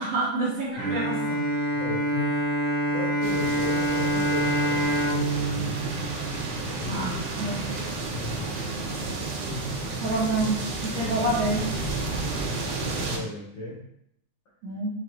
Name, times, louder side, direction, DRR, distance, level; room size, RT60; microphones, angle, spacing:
voice 1, 0.0-1.4 6.9-7.6 10.0-11.6 14.6-14.9, right 2 dB, 65° right, -7 dB, 2.1 m, -28 dB
Bowed string instrument, 0.8-6.9, right 1 dB, 40° right, 1.6 m, -26 dB
voice 2, 1.8-2.3 2.9-5.8 6.8-7.1 7.4-7.6 8.1-8.5 9.5-9.6 12.8-13.8, left 1 dB, 85° left, -9 dB, 1.1 m, -36 dB
sound 1, 3.2-13.2, right 3 dB, 85° right, 2.6 m, -31 dB
5.9 x 2.5 x 3.0 m, 0.75 s
omnidirectional pair, 4.2 m